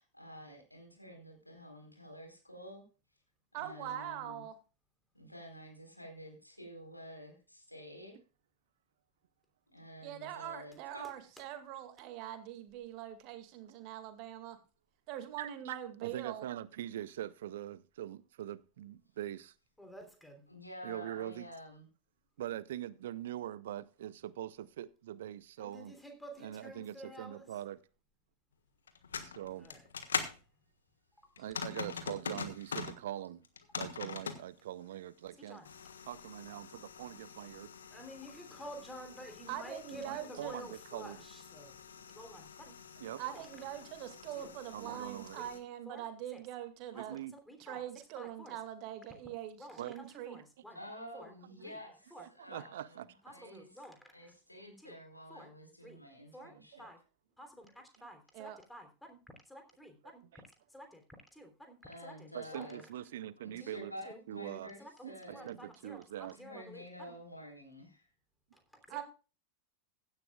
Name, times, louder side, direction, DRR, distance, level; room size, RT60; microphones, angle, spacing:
voice 1, 0.0-2.8 3.5-4.4 5.1-8.2 9.7-11.1 20.5-21.9 50.7-53.0 53.3-53.7 54.1-56.9 61.8-62.8 63.4-65.5 66.2-68.1, equal, 85° left, 4.2 m, -50 dB
voice 2, 3.5-4.6 10.0-14.6 15.1-16.4 39.5-40.7 43.2-47.2 47.6-50.4 58.3-58.6 68.9-69.0, right 12 dB, 45° right, 2.1 m, -43 dB
voice 3, 15.4-19.5 20.8-21.5 22.4-25.9 26.4-27.8 29.4-29.6 31.4-33.4 33.8-35.6 36.1-37.7 40.0-41.2 43.0-43.2 44.7-45.5 46.9-47.3 49.8-49.9 52.2-53.1 60.3-60.4 62.3-63.9 64.3-64.7 65.0-66.4, right 12 dB, 60° right, 0.5 m, -43 dB
voice 4, 19.8-20.4 25.6-27.5 29.6-29.9 31.4-31.5 35.5-35.7 37.9-41.8 42.1-42.7 43.2-43.5 44.4-44.5 44.8-45.0 45.3-45.5 45.8-46.0 46.3-46.4 46.9-47.2 47.5-47.8 48.2-48.6 49.6-50.8 51.1-51.3 51.6-51.8 52.1-52.7 53.2-54.3 54.8-55.0 55.3-55.5 55.8-56.0 56.3-56.5 56.8-57.0 57.4-59.2 59.5-60.2 60.7-61.0 61.3-62.7 63.6-63.8 64.0-64.2 64.5-67.1 68.5-69.0, equal, 5° left, 3.2 m, -51 dB
sound 1, 28.9-30.4 31.4-33.0 33.4-34.4 35.7-45.6, left 6 dB, 70° left, 1.4 m, -44 dB
16.0 x 11.5 x 2.3 m
figure-of-eight pair, 90°, 0 cm